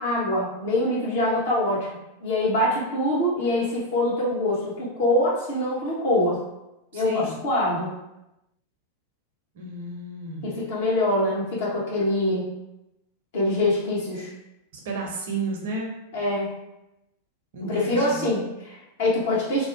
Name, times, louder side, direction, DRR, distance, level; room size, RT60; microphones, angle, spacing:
voice 1, 0.0-1.9 2.2-6.4 6.9-7.9 10.4-12.5 13.3-14.3 16.1-16.5 17.6-19.7, left 1 dB, 55° left, -5 dB, 0.9 m, -24 dB
voice 2, 6.9-7.4 9.5-10.6 14.8-15.9 17.5-18.3, right 2 dB, 55° right, 0 dB, 0.6 m, -32 dB
2.6 x 2.1 x 2.7 m, 0.91 s
figure-of-eight pair, 90°, 0 cm